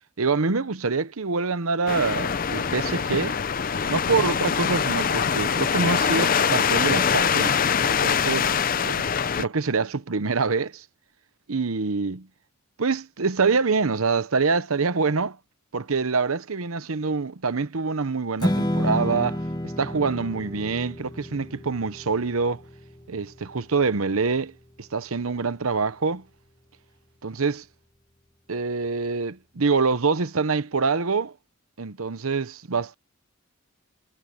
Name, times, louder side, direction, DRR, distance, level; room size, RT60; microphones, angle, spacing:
voice 1, 0.2-3.4 3.9-9.0 9.4-10.8 11.5-12.3 12.8-15.4 15.7-22.6 23.1-24.5 24.8-26.2 27.2-27.6 28.5-31.3 31.8-32.9, right 4 dB, 85° right, 0.9 m, -25 dB
sound 1, 1.9-9.4, left 7 dB, 40° left, 0.5 m, -23 dB
Strum, 18.4-24.7, equal, 20° left, 1.5 m, -31 dB
head